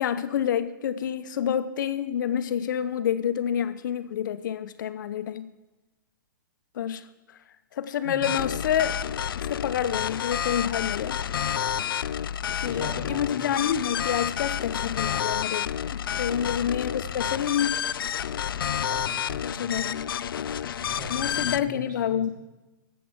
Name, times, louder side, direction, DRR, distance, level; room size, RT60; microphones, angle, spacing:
voice 1, 0.0-5.5 6.7-7.1 7.7-9.0 9.4-11.2 12.6-17.8 19.4-20.1 21.1-22.3, left 9 dB, 60° left, 11 dB, 0.8 m, -28 dB
voice 2, 8.0-8.4 12.6-13.5 16.1-16.5 18.5-19.9 20.7-22.2, equal, 75° right, -1 dB, 4.5 m, -41 dB
sound 1, 8.2-21.6, left 9 dB, 85° left, 0.4 m, -30 dB
13.5 x 7.5 x 5.9 m, 1.1 s
hypercardioid pair, 145°, 11 cm